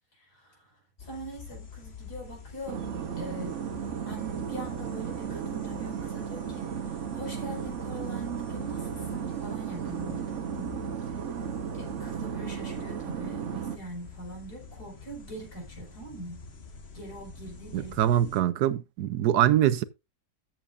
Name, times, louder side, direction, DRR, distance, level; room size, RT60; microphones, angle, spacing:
voice 1, 0.1-0.7 1.0-2.8 3.2-3.6 4.1-10.8 11.7-16.4 16.9-18.4, right 2 dB, 75° left, 5.4 m, -42 dB
sound 1, 1.0-18.4, left 5 dB, 45° left, 1.4 m, -46 dB
sound 2, 2.7-13.8, right 8 dB, 55° right, 1.1 m, -35 dB
voice 2, 17.7-19.8, right 11 dB, 80° right, 1.3 m, -24 dB
13.5 x 7.5 x 2.5 m
omnidirectional pair, 1.7 m